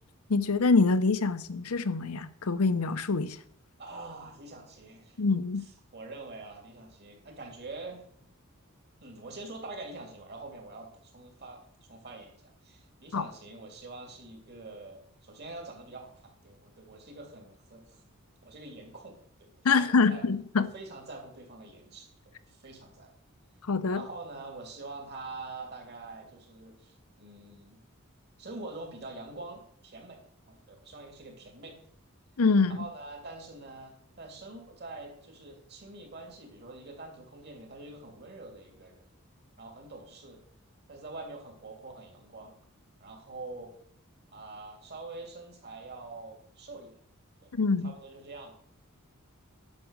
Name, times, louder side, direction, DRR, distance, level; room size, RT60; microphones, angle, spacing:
voice 1, 0.3-3.4 5.2-5.7 13.1-13.2 19.6-20.7 23.7-24.0 32.4-32.8 47.5-47.9, left 4 dB, 85° left, 0.7 m, -25 dB
voice 2, 3.8-5.2 5.9-8.0 9.0-11.6 11.9-18.0 18.4-20.3 20.6-23.1 23.9-27.8 28.4-30.2 30.5-31.7 32.7-39.0 39.6-40.4 40.9-42.5 43.0-43.7 44.3-47.0 47.4-47.5 47.8-48.6, right 2 dB, 50° right, 2.9 m, -45 dB
10.5 x 6.3 x 6.5 m
head